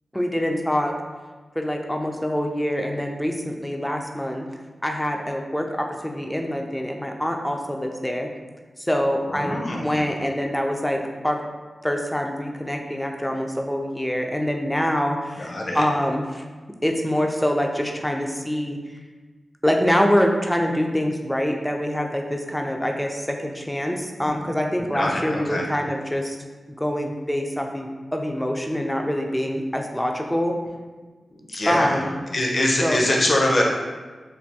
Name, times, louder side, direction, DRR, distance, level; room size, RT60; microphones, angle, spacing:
voice 1, 0.1-0.9 1.6-4.5 4.8-8.3 8.8-11.4 11.8-16.4 16.8-18.8 19.6-26.4 26.8-30.5 31.6-32.1 32.8-33.0, equal, 5° left, 2 dB, 0.4 m, -25 dB
voice 2, 9.3-10.0 15.4-15.8 24.2-24.4 24.8-25.7 31.5-32.0 32.3-33.6, left 1 dB, 55° left, -1 dB, 0.6 m, -23 dB
3.3 x 2.3 x 2.7 m, 1.3 s
cardioid pair, 65°, 0 cm